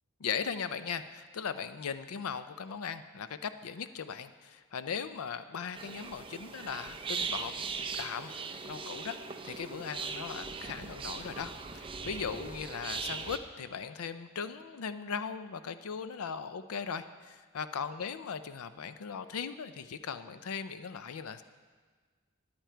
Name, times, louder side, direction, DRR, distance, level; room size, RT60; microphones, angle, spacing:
voice 1, 0.2-7.5 8.0-8.3 8.6-9.2 9.4-21.4, left 6 dB, 90° left, 12 dB, 0.5 m, -38 dB
sound 1, 5.7-13.4, right 5 dB, 25° right, 0.6 m, -39 dB
14.0 x 10.5 x 4.5 m, 1.5 s
head